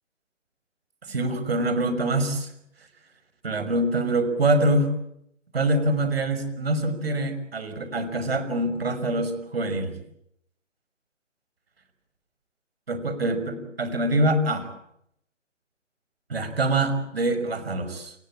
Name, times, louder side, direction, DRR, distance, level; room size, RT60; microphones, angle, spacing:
voice 1, 1.0-2.5 2.8-2.9 3.4-4.9 5.5-10.0 12.9-14.7 16.3-18.1, right 1 dB, 50° right, 11 dB, 5.9 m, -25 dB
28.5 x 18.0 x 8.9 m, 0.74 s
hypercardioid pair, 165°, 37 cm